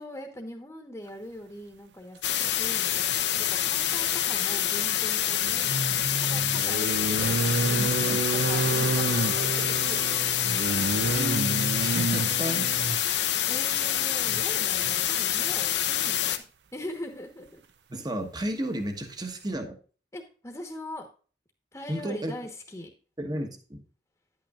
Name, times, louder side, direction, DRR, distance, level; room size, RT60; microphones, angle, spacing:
voice 1, 0.0-5.8 6.2-10.6 13.0-16.4 16.7-17.6 20.1-21.1 21.7-22.9, left 1 dB, 15° left, 3 dB, 1.2 m, -41 dB
sound 1, 2.2-16.4, left 11 dB, 80° left, 0.8 m, -26 dB
sound 2, 3.1-3.2 5.4-13.1 14.3-14.4 14.7-14.9, right 3 dB, 75° right, 0.7 m, -29 dB
voice 2, 7.8-8.2 11.1-13.3 17.9-19.8 21.9-22.3 23.2-23.8, right 1 dB, 25° right, 6 dB, 1.2 m, -33 dB
10.0 x 8.9 x 2.5 m, 0.38 s
head